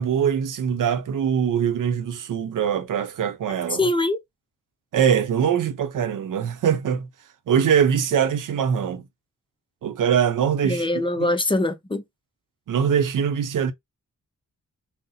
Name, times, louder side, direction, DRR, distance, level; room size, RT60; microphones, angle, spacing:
voice 1, 0.0-3.8 4.9-7.1 7.5-9.1 9.8-10.9 11.2-11.3 12.7-13.7, right 8 dB, 80° right, 0.6 m, -22 dB
voice 2, 3.8-4.2 10.6-12.0, left 2 dB, 15° left, 0.5 m, -23 dB
2.7 x 2.0 x 3.8 m
cardioid pair, 85°, 31 cm